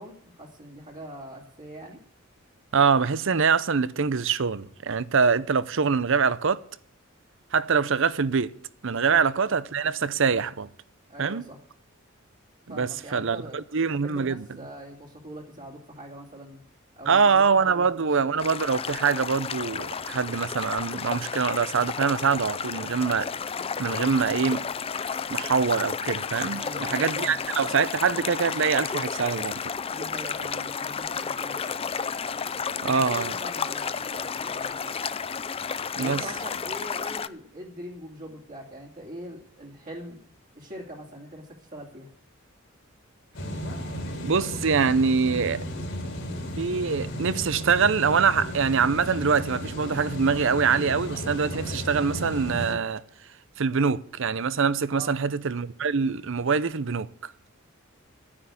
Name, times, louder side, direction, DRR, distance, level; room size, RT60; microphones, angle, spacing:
voice 1, 0.0-2.0 9.0-9.2 11.1-11.6 12.7-13.6 14.0-16.6 17.0-18.3 23.5-23.7 26.6-27.4 29.9-31.9 32.3-35.0 36.0-40.2 40.5-42.1 54.9-55.1, right 1 dB, 40° right, 2.6 m, -42 dB
voice 2, 2.7-6.6 7.5-8.5 8.8-10.7 11.2-11.4 12.7-14.5 17.1-23.3 23.8-24.6 25.3-26.6 26.9-29.6 32.8-33.3 36.0-36.2 44.2-45.6 46.6-53.0 53.6-57.3, right 5 dB, 65° right, 0.7 m, -24 dB
sound 1, 18.4-37.3, left 6 dB, 30° left, 0.5 m, -32 dB
sound 2, 43.3-52.7, equal, 60° left, 2.8 m, -34 dB
12.5 x 9.9 x 8.4 m
head